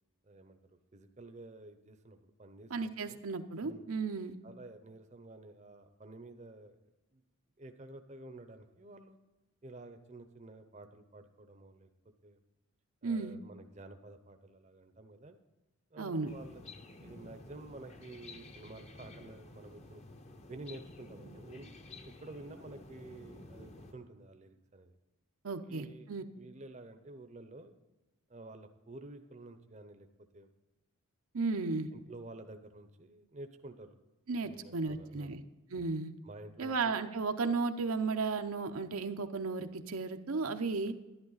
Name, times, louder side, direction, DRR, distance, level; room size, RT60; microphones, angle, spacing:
voice 1, 0.2-0.6 0.9-3.2 3.6-3.8 4.4-6.8 7.1-7.2 7.6-9.2 9.6-11.9 12.2-12.4 13.0-15.4 15.9-16.6 17.0-20.0 20.5-21.7 22.2-24.9 25.6-26.1 26.3-27.8 28.3-30.1 30.3-30.5 31.9-33.9 34.4-35.3 36.2-36.9, right 2 dB, 30° right, 8 dB, 0.6 m, -50 dB
voice 2, 2.7-4.3 13.0-13.4 16.0-16.3 25.4-26.2 31.3-31.9 34.3-35.4 35.7-36.1 36.6-40.9, right 4 dB, 80° right, 7 dB, 0.7 m, -34 dB
sound 1, 16.3-23.9, left 2 dB, 30° left, 0.7 m, -52 dB
11.0 x 11.0 x 4.0 m, 1.1 s
head